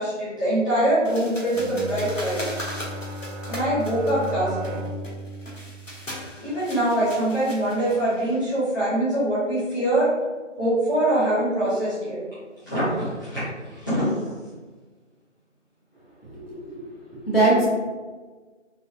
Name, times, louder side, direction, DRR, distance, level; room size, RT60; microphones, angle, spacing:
voice 1, 0.0-2.4 3.4-4.8 6.4-10.1 10.6-12.2 12.6-13.4 13.7-14.1, right 1 dB, 15° left, -17 dB, 1.2 m, -23 dB
sound 1, 1.0-8.4, equal, 85° left, 1.3 m, -38 dB
Bowed string instrument, 1.5-6.7, equal, 80° right, 0.8 m, -36 dB
voice 2, 16.2-16.8 17.1-17.7, right 2 dB, 50° left, -7 dB, 1.4 m, -22 dB
4.0 x 2.6 x 3.1 m, 1.3 s
figure-of-eight pair, 165°, 38 cm